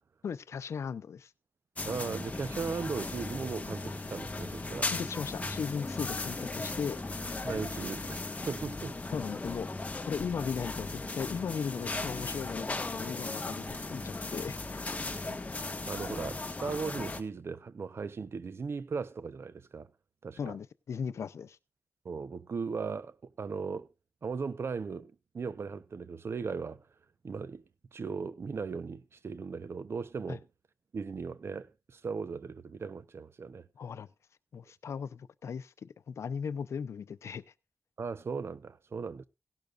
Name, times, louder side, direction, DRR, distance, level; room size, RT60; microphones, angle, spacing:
voice 1, 0.2-1.3 4.8-7.0 9.1-9.7 10.0-14.8 20.4-21.6 30.3-30.4 33.8-34.1 34.5-37.4, left 6 dB, 90° left, 0.6 m, -37 dB
sound 1, 1.8-17.2, left 2 dB, 30° left, 1.5 m, -37 dB
voice 2, 1.8-4.9 7.4-8.2 8.5-9.0 15.1-15.4 15.8-19.9 20.2-20.5 22.0-23.9 24.2-26.9 27.2-27.6 27.9-30.5 30.9-33.7 38.0-39.3, right 5 dB, 65° right, 0.9 m, -37 dB
17.0 x 12.0 x 2.5 m
wide cardioid pair, 85°, 5 cm